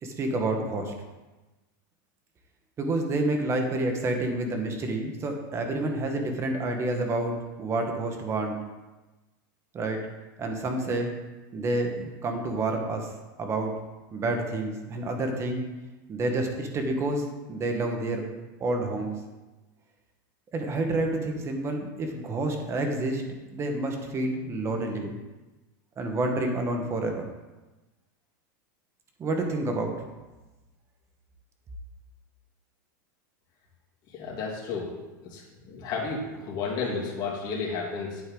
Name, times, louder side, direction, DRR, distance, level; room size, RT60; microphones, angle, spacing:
voice 1, 0.0-0.9 2.8-8.6 9.7-10.1 10.4-11.1 11.5-13.1 13.4-13.7 14.1-15.7 16.1-18.2 18.6-19.2 20.5-23.2 23.5-25.1 26.0-27.2 29.2-29.9, right 2 dB, 25° right, 3 dB, 1.4 m, -29 dB
voice 2, 34.1-34.9 35.2-35.4 35.7-38.2, left 4 dB, 40° left, -3 dB, 2.9 m, -32 dB
9.1 x 8.3 x 3.9 m, 1.1 s
supercardioid pair, 135°, 11 cm